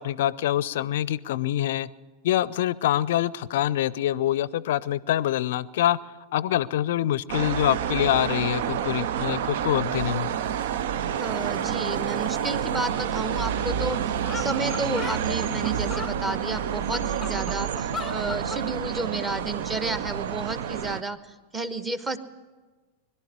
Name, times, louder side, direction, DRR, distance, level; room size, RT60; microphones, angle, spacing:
voice 1, 0.0-1.9 2.2-6.0 6.3-10.3, left 12 dB, 55° left, 21 dB, 0.5 m, -25 dB
sound 1, 7.3-21.0, right 9 dB, 55° right, 0.5 m, -29 dB
sound 2, 9.2-20.2, right 2 dB, 80° right, 0.9 m, -39 dB
voice 2, 11.2-22.2, right 2 dB, 15° right, 12 dB, 1.1 m, -31 dB
sound 3, 13.6-13.7 13.9-14.0 14.2-16.1 16.7-18.6, left 6 dB, 15° left, 0.6 m, -37 dB
22.0 x 12.0 x 9.8 m, 1.3 s
figure-of-eight pair, 90°, 0 cm